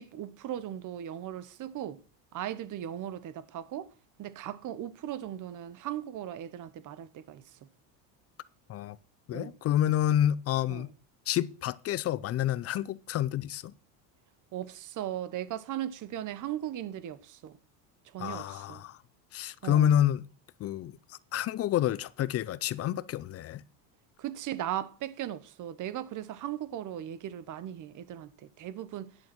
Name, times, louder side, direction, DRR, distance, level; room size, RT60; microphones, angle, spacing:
voice 1, 0.0-2.0 2.3-3.9 4.2-7.4 9.3-9.5 10.7-10.9 14.5-17.6 18.1-18.8 19.6-20.0 24.2-29.1, right 11 dB, 40° right, 1.1 m, -38 dB
voice 2, 9.3-10.9 11.3-13.7 18.2-19.0 19.3-20.2 20.6-21.0 21.3-23.6, left 11 dB, 35° left, 0.4 m, -28 dB
11.0 x 7.0 x 6.1 m
supercardioid pair, 125°, 46 cm